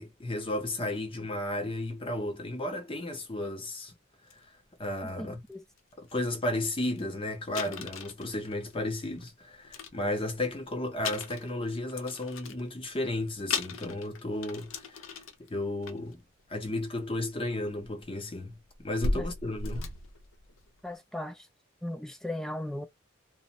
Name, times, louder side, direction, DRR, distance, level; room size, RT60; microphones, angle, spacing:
voice 1, 0.0-3.9 4.8-5.4 6.0-15.0 15.4-16.2 16.5-19.9, left 1 dB, 25° left, 0.7 m, -33 dB
sound 1, 4.3-4.4 4.8-5.1 5.8-5.9 6.1-6.3 6.7-6.8 7.0-7.1 7.5-9.3 9.6-10.6 11.0-12.7 13.2-13.3 13.5-15.5 15.8-16.1 17.2-17.3 17.8-20.8, left 3 dB, 70° left, 0.6 m, -37 dB
voice 2, 5.0-5.6 19.1-19.3 19.7-19.9 20.8-21.5 21.8-22.9, left 1 dB, ahead, 0.3 m, -37 dB
2.5 x 2.0 x 2.9 m
head